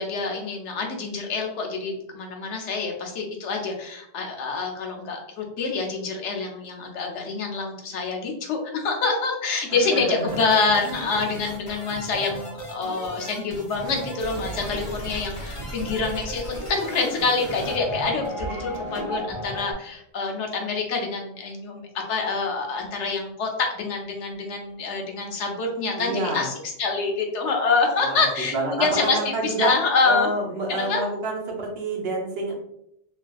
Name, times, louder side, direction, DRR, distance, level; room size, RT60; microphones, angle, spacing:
voice 1, 0.0-30.3 30.7-31.0, left 4 dB, 80° left, 2 dB, 1.0 m, -26 dB
voice 2, 9.7-10.4 26.0-26.5 28.0-29.7 30.1-32.5, right 2 dB, 60° right, -1 dB, 1.0 m, -28 dB
sound 1, 10.3-19.7, right 1 dB, 30° left, 0.8 m, -35 dB
3.2 x 2.5 x 2.3 m, 0.76 s
omnidirectional pair, 1.2 m